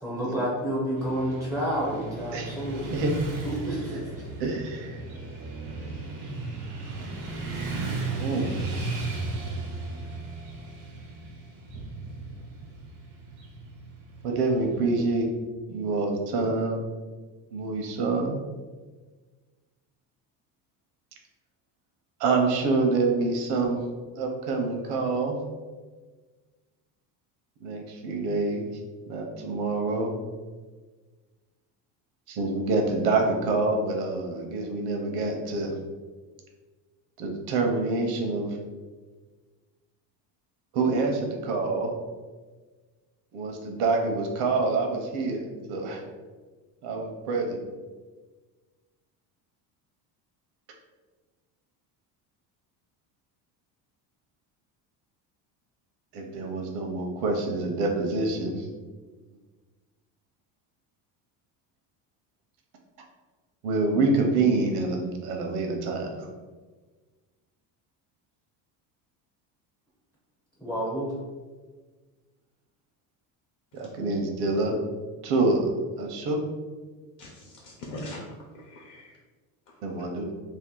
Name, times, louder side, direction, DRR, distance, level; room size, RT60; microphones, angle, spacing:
voice 1, 0.0-2.9 3.4-4.2 70.6-71.1, right 1 dB, ahead, -7 dB, 0.4 m, -29 dB
Motorcycle / Traffic noise roadway noise, 1.0-15.1, right 3 dB, 85° right, 1.1 m, -36 dB
voice 2, 2.8-3.1 3.9-4.0 4.4-5.0 8.2-8.5 14.2-15.3 15.7-16.8 17.5-18.4 22.2-23.9 24.1-25.4 27.6-28.7 29.1-30.2 32.3-35.8 37.2-38.6 40.7-41.9 43.3-46.0 46.8-47.6 56.1-58.7 63.6-66.3 73.7-74.8 75.2-75.7 76.0-76.4 79.8-80.3, right 3 dB, 70° right, 2 dB, 0.7 m, -26 dB
voice 3, 77.2-78.2 78.5-79.2 79.7-80.0, left 1 dB, 50° left, -3 dB, 0.6 m, -42 dB
2.7 x 2.5 x 3.7 m, 1.4 s
cardioid pair, 165°, 41 cm